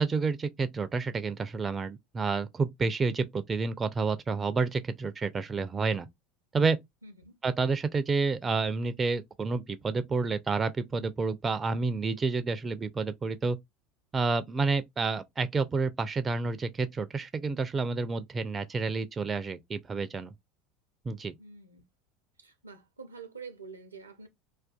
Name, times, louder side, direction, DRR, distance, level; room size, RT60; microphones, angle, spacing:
voice 1, 0.0-6.1 6.5-6.8 7.4-13.6 14.1-20.3 21.1-21.3, right 4 dB, 25° right, 0.3 m, -29 dB
voice 2, 7.0-7.3 21.4-21.8 22.4-24.3, right 5 dB, 85° right, 0.5 m, -47 dB
2.4 x 2.2 x 2.2 m
figure-of-eight pair, 75°, 0 cm